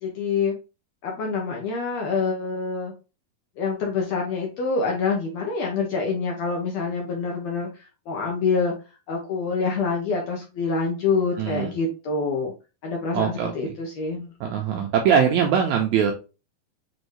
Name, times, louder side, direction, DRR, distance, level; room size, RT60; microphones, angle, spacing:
voice 1, 0.0-0.5 1.0-2.9 3.6-8.7 9.1-12.5 12.8-14.3, left 4 dB, 75° left, 0 dB, 1.6 m, -26 dB
voice 2, 11.4-11.7 13.1-13.7 14.4-16.1, right 7 dB, 85° right, 2 dB, 1.7 m, -22 dB
6.3 x 2.6 x 3.0 m, 0.30 s
omnidirectional pair, 3.9 m